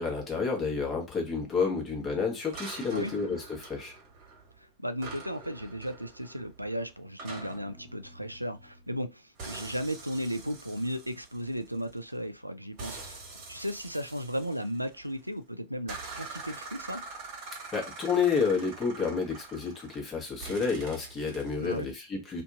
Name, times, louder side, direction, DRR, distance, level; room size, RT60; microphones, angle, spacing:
voice 1, 0.0-3.9 17.7-22.4, left 5 dB, 20° left, 1.2 m, -30 dB
sound 1, 2.5-4.6 5.0-9.0 9.4-12.1 12.8-15.2 15.9-20.1 20.4-21.9, right 3 dB, 45° right, 1.3 m, -45 dB
voice 2, 4.6-13.2 13.5-17.0 21.6-21.9, equal, 90° right, 0.3 m, -35 dB
2.7 x 2.5 x 2.4 m
figure-of-eight pair, 90°, 0 cm